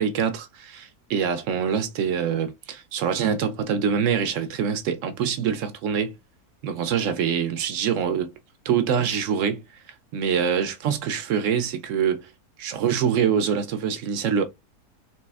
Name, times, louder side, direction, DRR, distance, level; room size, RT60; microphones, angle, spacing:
voice 1, 0.0-6.1 6.6-8.3 8.6-9.6 10.1-12.3 12.6-14.5, right 7 dB, 70° right, 0.8 m, -25 dB
4.1 x 3.0 x 2.3 m
omnidirectional pair, 1.7 m